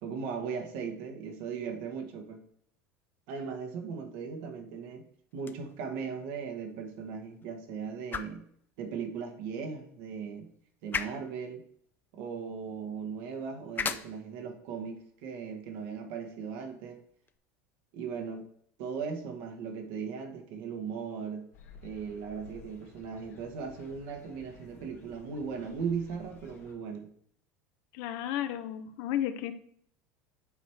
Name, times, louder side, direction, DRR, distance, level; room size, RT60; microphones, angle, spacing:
voice 1, 0.0-2.4 3.3-5.1 5.3-8.4 8.8-10.5 10.8-11.6 12.1-17.0 17.9-18.5 18.8-21.5 21.8-27.1, right 6 dB, 70° right, 5 dB, 1.5 m, -38 dB
sound 1, 5.3-17.4, left 6 dB, 25° left, 0.6 m, -43 dB
sound 2, 21.5-26.7, left 5 dB, 85° left, 1.5 m, -54 dB
voice 2, 27.9-29.5, left 11 dB, 65° left, 10 dB, 0.8 m, -33 dB
7.9 x 4.4 x 4.6 m, 0.64 s
hypercardioid pair, 95°, 8 cm